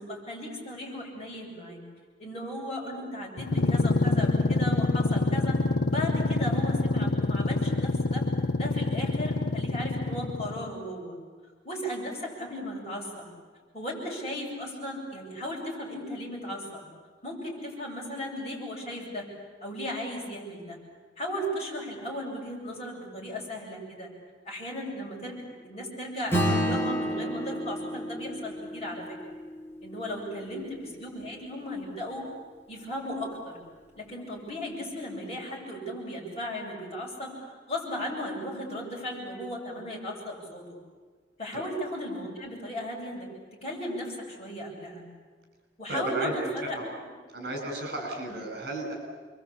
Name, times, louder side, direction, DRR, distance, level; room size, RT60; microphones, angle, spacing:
voice 1, 0.0-1.8 2.2-5.6 5.9-8.3 8.5-11.1 11.6-13.3 13.7-16.8 17.2-19.3 19.6-20.8 21.2-24.1 24.4-29.3 29.8-32.3 32.7-33.6 33.9-40.8 41.4-43.3 43.6-45.0 45.8-46.8 48.3-48.4, equal, 35° left, -3 dB, 7.8 m, -36 dB
sound 1, 3.4-10.7, left 2 dB, 60° left, 0.8 m, -26 dB
Acoustic guitar / Strum, 26.3-31.1, equal, 15° left, 3.8 m, -31 dB
voice 2, 30.4-30.7 41.5-41.7 45.9-46.8 47.3-48.9, right 1 dB, 60° right, 3 dB, 7.2 m, -34 dB
27.5 x 23.0 x 8.7 m, 1.5 s
head